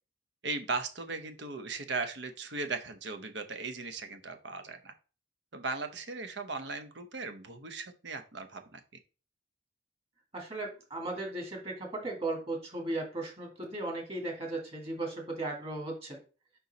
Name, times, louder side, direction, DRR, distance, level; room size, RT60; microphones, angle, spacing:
voice 1, 0.4-4.9 5.5-8.8, right 3 dB, 65° right, 8 dB, 0.9 m, -37 dB
voice 2, 10.3-16.2, right 2 dB, 30° right, 2 dB, 2.0 m, -36 dB
5.3 x 4.5 x 4.0 m, 0.34 s
head